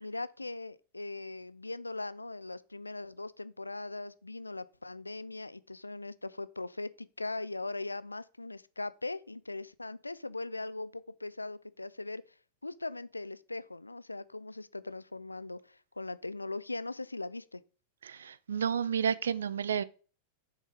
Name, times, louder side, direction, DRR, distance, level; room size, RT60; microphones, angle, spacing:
voice 1, 0.0-12.2 12.6-17.6, left 2 dB, 80° left, 0.3 m, -40 dB
voice 2, 18.1-19.8, right 7 dB, 65° right, 0.4 m, -31 dB
7.0 x 5.0 x 3.9 m
figure-of-eight pair, 90°, 0 cm